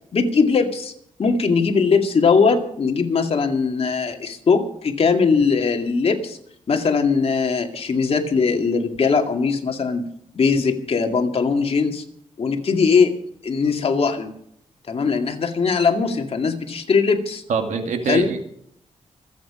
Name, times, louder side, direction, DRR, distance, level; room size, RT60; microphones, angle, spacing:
voice 1, 0.1-0.9 1.2-6.4 6.7-10.1 10.3-12.0 12.4-13.1 13.4-14.3 14.9-17.4 18.1-18.4, left 5 dB, 50° left, 4 dB, 2.3 m, -20 dB
voice 2, 17.5-18.4, right 5 dB, 80° right, 5 dB, 2.3 m, -23 dB
26.5 x 8.9 x 5.0 m, 0.68 s
wide cardioid pair, 110°, 12 cm